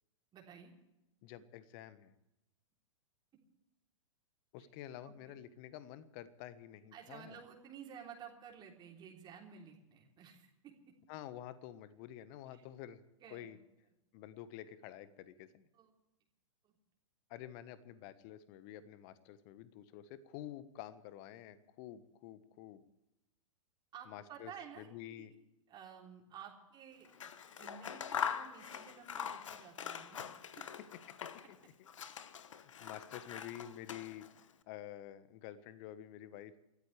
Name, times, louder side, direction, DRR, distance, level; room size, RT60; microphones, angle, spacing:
voice 1, 0.3-0.7 5.0-5.3 6.9-10.7 13.2-13.6 15.7-15.9 16.6-16.7 23.9-25.3 25.7-27.3 27.5-30.2, right 8 dB, 25° right, 0 dB, 3.5 m, -53 dB
voice 2, 1.2-2.1 4.5-7.4 11.1-13.0 13.3-13.6 14.1-15.7 17.3-22.8 24.1-25.3 31.6-31.9 32.3-34.2 34.7-36.6, left 12 dB, 40° left, 14 dB, 1.3 m, -49 dB
Scissors, 27.0-31.6 31.9-34.4, left 8 dB, 65° left, 1.1 m, -43 dB
28.5 x 13.5 x 3.4 m, 0.90 s
figure-of-eight pair, 105°, 17 cm